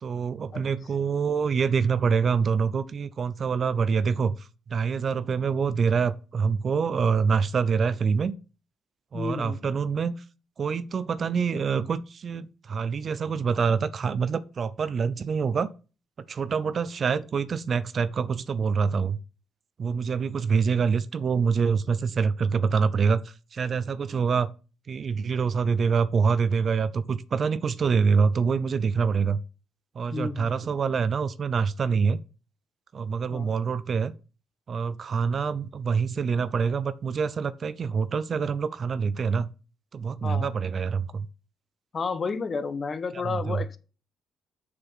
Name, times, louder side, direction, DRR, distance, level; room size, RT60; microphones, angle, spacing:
voice 1, 0.0-8.3 9.1-10.1 10.6-15.7 16.3-19.2 19.8-24.5 24.9-29.4 30.0-32.2 32.9-34.1 34.7-39.5 39.9-41.3 43.2-43.6, right 5 dB, 50° right, 0.6 m, -26 dB
voice 2, 9.1-9.7 30.1-30.5 33.3-33.5 40.2-40.5 41.9-43.8, left 4 dB, 40° left, 1.1 m, -31 dB
6.7 x 6.7 x 5.8 m
cardioid pair, 90°, 0 cm